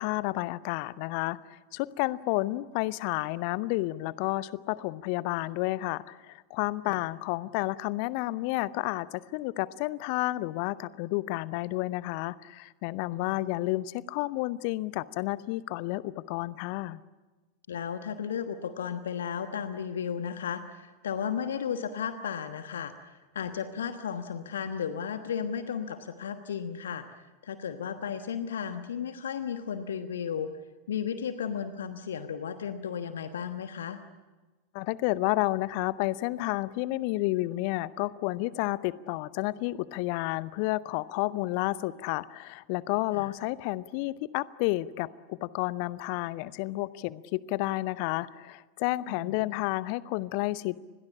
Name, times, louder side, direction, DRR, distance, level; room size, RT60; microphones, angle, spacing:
voice 1, 0.0-17.0 34.7-50.8, left 19 dB, 45° left, 19 dB, 0.8 m, -31 dB
voice 2, 13.1-13.4 17.7-30.5 30.9-34.0 43.1-43.3 49.1-49.4, left 7 dB, 65° left, 9 dB, 1.2 m, -34 dB
29.0 x 21.5 x 8.6 m, 1.2 s
figure-of-eight pair, 90°, 0 cm